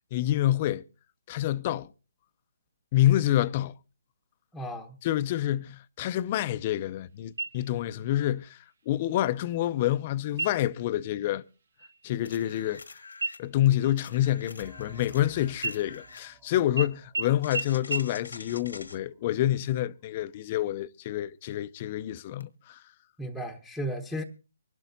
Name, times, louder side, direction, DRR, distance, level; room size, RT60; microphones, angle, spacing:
voice 1, 0.1-0.8 1.3-1.9 2.9-3.7 5.0-8.6 8.9-11.4 12.0-12.8 13.4-22.8, left 13 dB, 35° left, 0.6 m, -27 dB
voice 2, 4.5-5.0 18.5-18.6 23.2-24.2, equal, ahead, 1.0 m, -35 dB
sound 1, 7.4-8.0 8.4-8.5 9.1-9.6 10.3-10.8 11.2-11.5 11.8-12.9 13.2-15.2 15.6-16.4 16.8-16.9 17.1-17.2 17.5-17.6 17.9-18.0, right 3 dB, 70° right, 1.6 m, -35 dB
sound 2, 12.3-13.5 14.0-16.3 17.4-19.0 22.4-22.5, left 4 dB, 85° left, 1.4 m, -46 dB
sound 3, 14.6-19.9, right 4 dB, 15° right, 1.5 m, -58 dB
24.5 x 12.0 x 2.7 m
hypercardioid pair, 145°, 0 cm